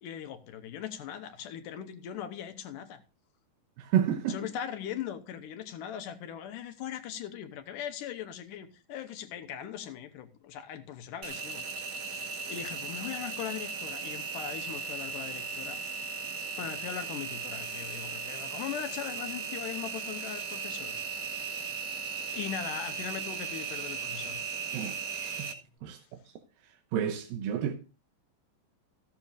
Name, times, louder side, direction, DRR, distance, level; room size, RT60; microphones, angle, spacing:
voice 1, 0.0-3.0 4.3-15.8 16.6-21.0 21.2-21.6 22.3-24.4 25.9-26.0, left 9 dB, 70° left, 2.4 m, -40 dB
voice 2, 3.8-4.4 24.7-25.5 25.8-26.0 26.6-27.7, right 9 dB, 80° right, 2.7 m, -31 dB
Engine, 11.2-25.5, right 5 dB, 60° right, 3.0 m, -37 dB
15.0 x 11.5 x 2.6 m
omnidirectional pair, 4.2 m